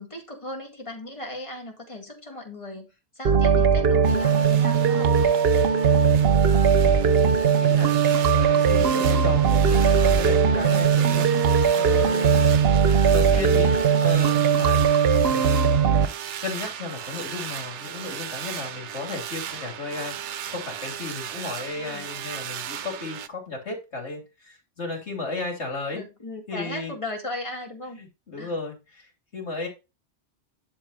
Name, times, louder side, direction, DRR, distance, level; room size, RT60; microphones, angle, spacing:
voice 1, 0.0-5.4 13.2-13.9 21.8-22.1 25.9-28.0 28.4-28.6, left 1 dB, 30° left, 2.2 m, -37 dB
sound 1, 3.3-16.1, right 6 dB, 60° right, 1.0 m, -19 dB
sound 2, 4.0-23.3, right 10 dB, 90° right, 1.0 m, -36 dB
voice 2, 6.8-11.3 11.7-12.5 12.8-13.7 14.0-14.9 15.2-15.6 16.4-26.0 26.5-26.9 28.0-29.7, left 3 dB, 75° left, 3.1 m, -34 dB
11.0 x 4.3 x 4.1 m
omnidirectional pair, 1.2 m